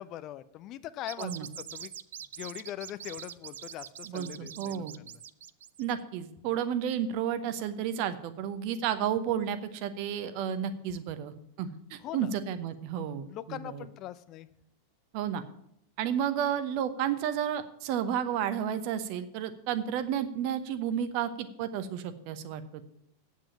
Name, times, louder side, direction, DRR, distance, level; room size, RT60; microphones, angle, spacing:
voice 1, 0.0-2.0 2.4-5.2 12.0-12.3 13.3-14.5, left 12 dB, 35° left, 15 dB, 0.5 m, -41 dB
sound 1, 1.0-6.0, right 10 dB, 60° right, 0.4 m, -44 dB
voice 2, 4.0-4.9 5.8-13.9 15.1-15.4 16.0-22.8, right 9 dB, 45° right, 11 dB, 0.9 m, -32 dB
8.8 x 7.4 x 8.7 m, 0.75 s
figure-of-eight pair, 90°, 0 cm